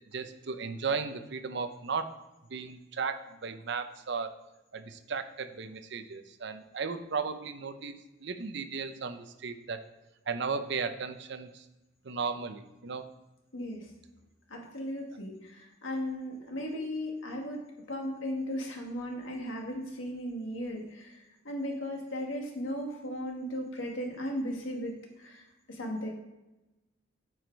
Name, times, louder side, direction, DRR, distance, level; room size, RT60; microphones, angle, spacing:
voice 1, 0.1-2.1 2.5-4.4 4.7-7.9 8.2-9.8 10.3-11.6 12.0-13.1, right 5 dB, 65° right, 10 dB, 0.6 m, -35 dB
voice 2, 13.5-13.9 14.5-26.1, equal, 85° left, 1 dB, 1.8 m, -36 dB
9.1 x 4.9 x 4.6 m, 1.0 s
head